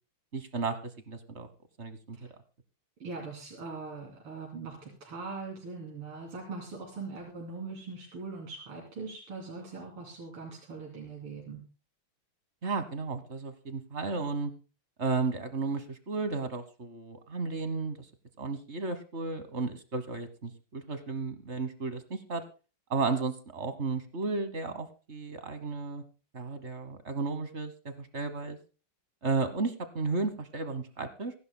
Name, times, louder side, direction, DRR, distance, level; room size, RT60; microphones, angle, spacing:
voice 1, 0.3-1.5 1.8-2.2 12.6-14.5 15.0-18.1 18.4-22.4 22.9-26.0 26.3-28.6 29.2-31.3, right 4 dB, 40° right, 10 dB, 1.1 m, -33 dB
voice 2, 3.0-11.6, right 4 dB, 85° right, -3 dB, 4.0 m, -41 dB
26.0 x 11.5 x 2.2 m, 0.34 s
omnidirectional pair, 2.4 m